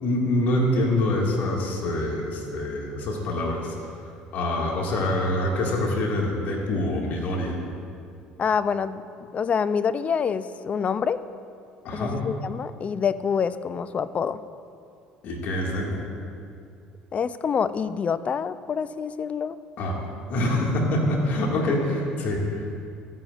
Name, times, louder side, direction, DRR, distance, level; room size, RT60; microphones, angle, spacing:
voice 1, 0.0-3.7 4.3-7.6 11.8-12.2 15.2-16.0 19.8-20.0 20.3-22.7, left 1 dB, 60° left, -1 dB, 2.0 m, -25 dB
voice 2, 8.4-9.0 9.3-11.2 11.9-14.4 17.1-19.6, left 6 dB, 40° left, 15 dB, 0.4 m, -26 dB
12.5 x 9.7 x 2.5 m, 2.4 s
hypercardioid pair, 75°, 4 cm